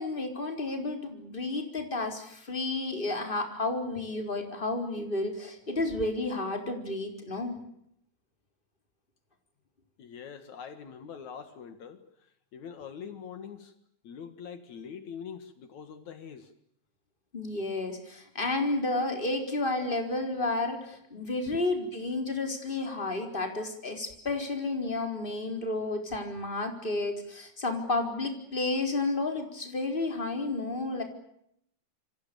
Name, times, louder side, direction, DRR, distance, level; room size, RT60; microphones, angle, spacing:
voice 1, 0.0-7.6 17.3-31.0, left 2 dB, 15° left, 4 dB, 4.3 m, -31 dB
voice 2, 10.0-12.0 12.5-13.7 14.0-16.5 21.5-21.6, left 7 dB, 70° left, 9 dB, 3.1 m, -43 dB
28.0 x 25.5 x 6.9 m, 0.75 s
omnidirectional pair, 3.4 m